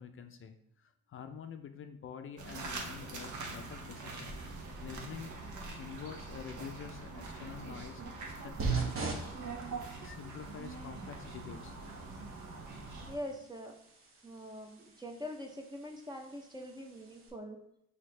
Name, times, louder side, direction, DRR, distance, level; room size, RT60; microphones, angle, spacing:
voice 1, 0.0-5.3 5.8-9.3 10.0-11.7 13.4-13.5, left 7 dB, 45° left, 7 dB, 0.4 m, -47 dB
sound 1, 2.4-13.2, right 3 dB, 75° right, 1.0 m, -44 dB
sound 2, 8.6-17.3, right 5 dB, 45° right, 0.9 m, -42 dB
voice 2, 13.1-13.7 14.2-17.6, equal, 15° right, 2 dB, 0.6 m, -43 dB
5.8 x 2.8 x 3.2 m, 0.76 s
cardioid pair, 90°, 30 cm